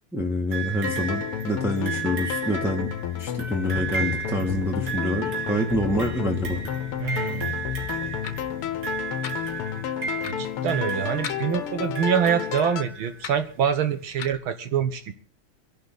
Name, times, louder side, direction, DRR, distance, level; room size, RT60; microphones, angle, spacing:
voice 1, 0.1-2.9 3.2-6.6, left 1 dB, ahead, 0 dB, 1.6 m, -26 dB
sound 1, 0.5-13.3 14.3-14.4, right 7 dB, 45° right, 3.0 m, -34 dB
sound 2, 0.8-12.8, left 10 dB, 90° left, 1.9 m, -31 dB
voice 2, 7.0-7.6 10.2-15.1, right 8 dB, 70° right, 10 dB, 1.8 m, -25 dB
sound 3, 8.2-8.3 9.2-9.3 10.2-10.4 11.2-11.4 12.2-12.3 13.2-13.4 14.2-14.4, left 9 dB, 70° left, 1.8 m, -35 dB
25.5 x 11.5 x 4.0 m, 0.38 s
omnidirectional pair, 2.4 m